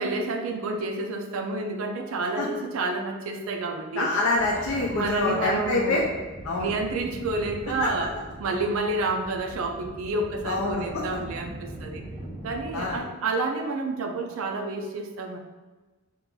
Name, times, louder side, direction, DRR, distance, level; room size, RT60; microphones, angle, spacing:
voice 1, 0.0-4.1 4.9-6.1 6.6-8.1 8.4-12.1 12.4-15.4, right 3 dB, 70° right, 3 dB, 0.4 m, -29 dB
voice 2, 4.0-6.0 6.4-6.7 7.8-7.9 10.4-11.0 12.7-13.0, left 2 dB, 75° left, -2 dB, 0.4 m, -26 dB
sound 1, 4.3-13.0, right 1 dB, 5° right, 0.9 m, -41 dB
2.8 x 2.4 x 3.7 m, 1.2 s
head